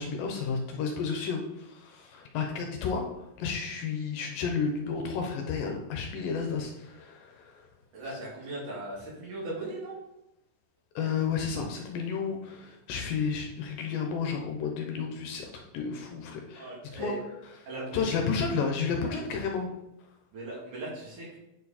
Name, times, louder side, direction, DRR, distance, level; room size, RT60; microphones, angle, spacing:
voice 1, 0.0-7.6 11.0-16.7 16.9-17.1 17.9-19.7, left 5 dB, 75° left, 3 dB, 2.3 m, -32 dB
voice 2, 7.9-9.9 16.6-17.2 17.7-18.2 19.0-19.2 20.3-21.4, right 2 dB, 60° right, -5 dB, 3.6 m, -38 dB
8.7 x 4.6 x 4.2 m, 0.88 s
omnidirectional pair, 4.3 m